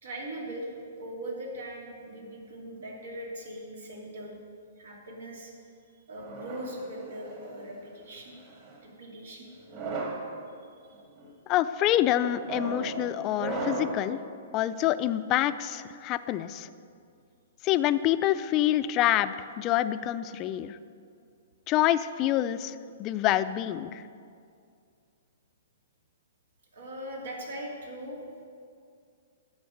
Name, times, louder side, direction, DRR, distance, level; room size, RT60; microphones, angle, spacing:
voice 1, 0.0-4.4 4.8-5.5 6.1-8.3 8.8-9.5 10.5-11.0 26.7-28.4, right 1 dB, 85° right, -1 dB, 2.7 m, -40 dB
sound 1, 6.2-7.6 8.4-8.8 9.6-10.3 10.9-11.3 12.2-14.1, right 2 dB, 40° right, 2.2 m, -36 dB
voice 2, 11.5-14.2 14.5-16.7 17.6-20.8 21.7-24.0, left 13 dB, 30° left, 13 dB, 0.4 m, -26 dB
11.0 x 7.3 x 6.4 m, 2.3 s
hypercardioid pair, 150°, 0 cm